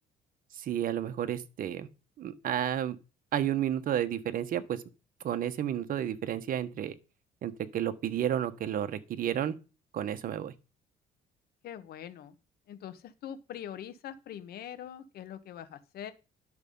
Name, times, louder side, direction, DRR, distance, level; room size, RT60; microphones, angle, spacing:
voice 1, 0.5-1.9 2.2-3.0 3.3-4.8 5.2-7.0 7.4-9.5 9.9-10.5, right 10 dB, 55° right, 1.2 m, -31 dB
voice 2, 11.6-12.3 12.7-16.1, left 10 dB, 65° left, 1.2 m, -43 dB
11.0 x 6.9 x 5.4 m
cardioid pair, 110°, 17 cm